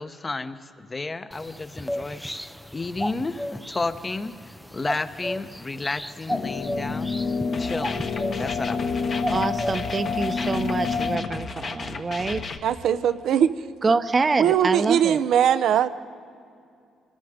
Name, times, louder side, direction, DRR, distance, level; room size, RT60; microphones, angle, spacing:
voice 1, 0.0-2.2 2.7-4.3 4.7-7.1 7.6-9.3, left 3 dB, 25° left, 10 dB, 1.0 m, -32 dB
sound 1, 1.3-11.2, equal, ahead, 0.6 m, -35 dB
sound 2, 6.3-11.3, left 5 dB, 70° left, 2.1 m, -28 dB
sound 3, 7.5-12.6, left 4 dB, 50° left, 1.4 m, -35 dB
voice 2, 9.3-12.6 13.8-15.2, right 4 dB, 30° right, 10 dB, 0.9 m, -26 dB
voice 3, 12.6-13.5 14.4-15.9, right 9 dB, 75° right, 13 dB, 0.7 m, -20 dB
25.5 x 20.5 x 5.0 m, 2.4 s
cardioid pair, 90°, 0 cm